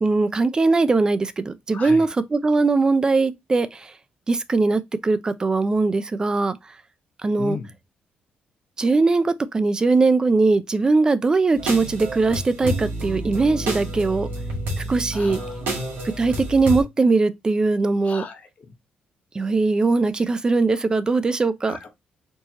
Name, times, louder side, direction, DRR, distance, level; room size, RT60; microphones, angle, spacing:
voice 1, 0.0-3.9 4.3-6.6 7.2-7.6 8.8-14.3 14.9-15.4 16.0-18.2 19.3-21.8, right 3 dB, 25° right, 0.5 m, -20 dB
voice 2, 1.7-2.1 7.4-7.7 15.1-15.8 18.0-18.8 21.7-21.9, left 5 dB, 45° left, 1.1 m, -36 dB
sound 1, 11.5-16.8, right 1 dB, 85° right, 1.9 m, -29 dB
4.5 x 2.9 x 2.8 m
cardioid pair, 125°, 3 cm